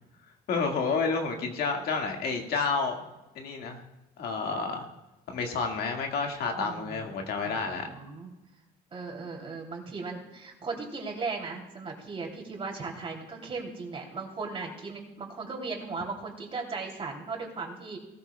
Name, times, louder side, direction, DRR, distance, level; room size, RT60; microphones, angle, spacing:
voice 1, 0.5-3.0 3.4-3.8 4.2-4.9 5.3-7.9, left 4 dB, 65° left, 2 dB, 1.9 m, -30 dB
voice 2, 6.5-7.2 7.4-8.3 8.9-18.0, right 4 dB, 35° right, 0 dB, 3.0 m, -37 dB
18.5 x 13.5 x 2.3 m, 1.0 s
cardioid pair, 110°, 17 cm